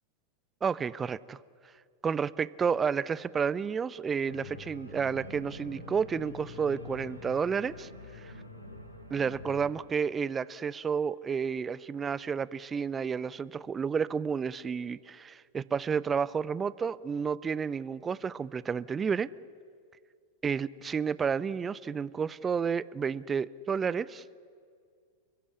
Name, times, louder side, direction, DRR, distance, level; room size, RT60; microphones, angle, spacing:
voice 1, 0.6-1.4 2.0-7.9 8.2-8.3 9.1-19.3 20.4-24.2, right 6 dB, 20° right, 21 dB, 0.6 m, -31 dB
Organ, 4.3-9.7, left 2 dB, 90° left, 4.3 m, -46 dB
29.0 x 15.5 x 10.0 m, 2.2 s
figure-of-eight pair, 90°, 0 cm